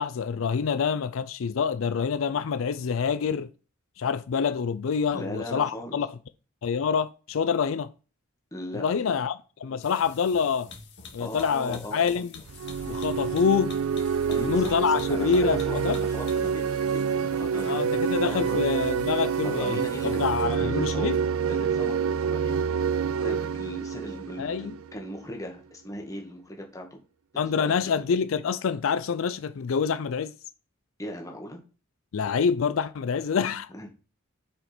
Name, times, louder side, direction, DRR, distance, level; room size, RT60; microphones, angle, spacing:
voice 1, 0.0-3.5 4.0-6.1 6.6-7.9 8.7-10.7 11.1-12.4 12.9-13.8 14.4-16.0 17.6-19.8 20.0-21.2 24.4-24.7 27.4-30.3 32.1-33.7, left 6 dB, 75° left, 0.4 m, -26 dB
voice 2, 5.1-5.9 8.5-9.2 11.2-12.2 14.3-14.8 15.1-18.6 19.4-21.1 21.5-22.6 22.9-27.0 27.3-28.0 31.0-31.6 33.7-33.9, equal, 15° left, 1.7 m, -38 dB
sound 1, 9.8-20.7, left 5 dB, 60° left, 1.8 m, -48 dB
sound 2, 12.5-25.1, right 6 dB, 85° right, 0.4 m, -27 dB
7.3 x 5.0 x 5.1 m
head